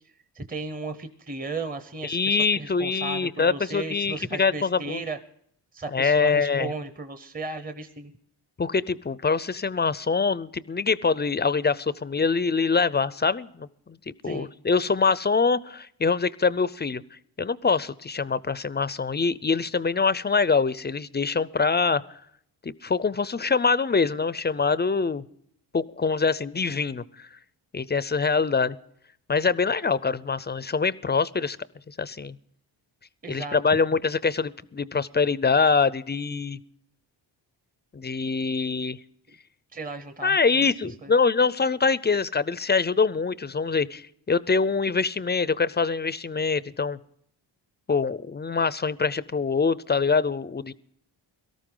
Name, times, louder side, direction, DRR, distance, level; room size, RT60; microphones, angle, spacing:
voice 1, 0.3-5.2 5.7-8.1 14.2-14.5 33.2-33.8 39.7-41.1, right 3 dB, 20° right, 8 dB, 0.7 m, -35 dB
voice 2, 2.0-5.0 5.9-6.7 8.6-17.0 17.4-22.0 22.6-25.2 25.7-27.3 27.7-28.8 29.3-31.6 32.0-32.4 33.3-36.6 37.9-39.0 40.2-47.0 47.9-50.7, left 4 dB, 25° left, 18 dB, 0.4 m, -24 dB
18.0 x 13.5 x 3.8 m, 0.68 s
wide cardioid pair, 95°, 44 cm